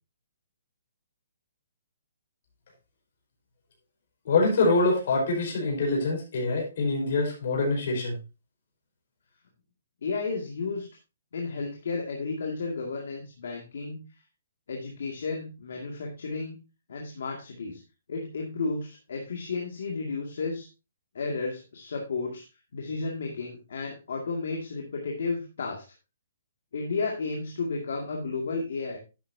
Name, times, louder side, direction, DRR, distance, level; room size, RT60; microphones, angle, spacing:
voice 1, 4.2-8.1, left 3 dB, 40° left, -1 dB, 4.8 m, -25 dB
voice 2, 10.0-10.9 11.3-14.0 14.7-16.6 16.9-17.8 18.1-20.7 21.1-22.4 22.7-25.8 26.7-29.0, left 4 dB, 55° left, 0 dB, 2.2 m, -32 dB
11.5 x 8.5 x 2.7 m, 0.28 s
hypercardioid pair, 180°, 0 cm